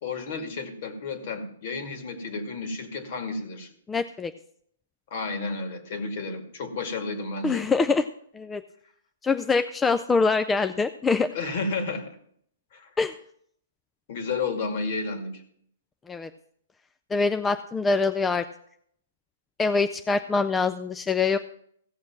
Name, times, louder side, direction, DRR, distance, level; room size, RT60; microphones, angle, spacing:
voice 1, 0.0-3.7 5.1-7.7 11.3-12.2 12.7-12.9 14.1-15.4, left 3 dB, 50° left, 6 dB, 2.3 m, -32 dB
voice 2, 3.9-4.3 7.4-8.1 8.3-8.6 9.2-11.3 13.0-13.1 16.1-16.3 17.1-18.4 19.6-21.4, left 4 dB, 10° left, 10 dB, 0.4 m, -24 dB
16.0 x 6.6 x 6.0 m, 0.66 s
hypercardioid pair, 145°, 0 cm